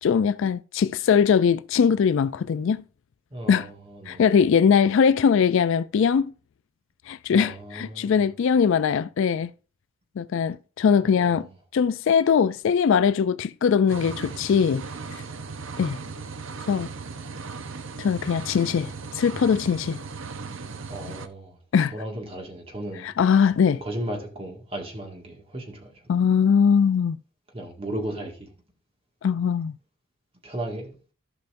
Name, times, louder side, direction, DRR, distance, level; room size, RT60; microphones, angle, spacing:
voice 1, 0.0-2.8 3.5-3.7 4.1-6.3 7.1-9.5 10.2-11.5 11.7-14.8 15.8-16.0 16.7-16.9 18.0-20.0 21.7-21.9 23.0-23.8 26.1-27.2 29.2-29.8, left 6 dB, 60° left, 0.3 m, -21 dB
voice 2, 3.3-4.2 7.3-8.2 11.2-11.4 20.9-21.6 21.9-23.1 23.8-26.1 27.5-28.5 30.4-31.0, right 1 dB, 25° right, 1.9 m, -35 dB
sound 1, 13.9-21.3, right 4 dB, 60° right, 0.7 m, -37 dB
15.0 x 5.7 x 2.6 m
head